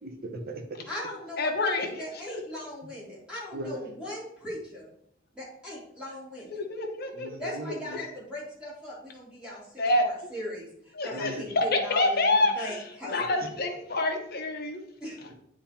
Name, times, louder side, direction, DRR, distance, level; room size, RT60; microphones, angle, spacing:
voice 1, 0.0-0.8 3.5-3.9 7.1-8.0 11.1-11.4 13.4-13.5, right 1 dB, 50° right, 3 dB, 1.2 m, -38 dB
voice 2, 0.9-4.9 5.3-6.5 7.4-13.2 15.0-15.2, left 1 dB, 5° right, -7 dB, 2.9 m, -39 dB
voice 3, 1.4-2.0 6.5-7.3 7.9-8.1 9.8-10.0 11.0-12.8 13.1-14.8, left 2 dB, 55° left, 3 dB, 1.2 m, -27 dB
9.5 x 3.8 x 4.4 m, 0.71 s
head